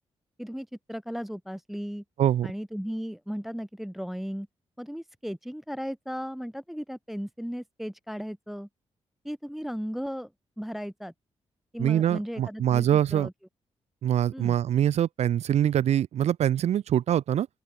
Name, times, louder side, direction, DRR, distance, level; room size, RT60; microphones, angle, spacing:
voice 1, 0.4-2.0 2.4-4.5 4.8-8.7 9.2-10.3 10.6-11.1 11.7-13.3 14.3-14.6, equal, ahead, 0.7 m, -36 dB
voice 2, 11.8-13.3 14.0-17.5, right 10 dB, 70° right, 0.6 m, -24 dB
open air
cardioid pair, 70°, 11 cm